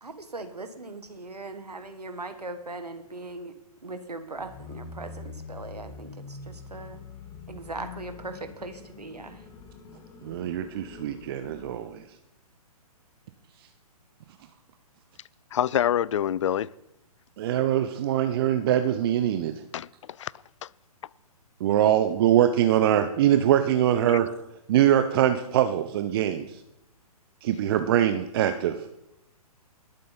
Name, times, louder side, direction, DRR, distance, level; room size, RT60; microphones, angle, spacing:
voice 1, 0.0-3.5 3.8-7.0 7.5-9.4, right 2 dB, 85° right, 1.6 m, -39 dB
sound 1, 4.4-12.0, left 4 dB, 15° left, 1.1 m, -44 dB
voice 2, 10.2-12.0 17.4-19.6 21.6-24.3 24.7-26.6 27.4-28.8, right 11 dB, 40° right, 0.7 m, -23 dB
voice 3, 15.5-16.7 19.7-20.3 20.6-20.7 24.1-24.2, left 10 dB, 50° left, 0.4 m, -26 dB
20.5 x 7.5 x 4.0 m
figure-of-eight pair, 125°, 20 cm